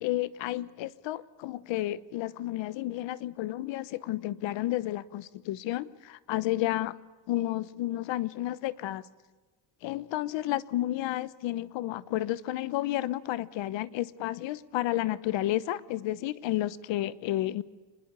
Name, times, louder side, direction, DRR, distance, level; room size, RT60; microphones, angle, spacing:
voice 1, 0.0-7.0 7.3-9.0 9.8-17.6, left 15 dB, 85° left, 17 dB, 1.1 m, -31 dB
26.0 x 20.5 x 6.8 m, 1.3 s
cardioid pair, 150°, 44 cm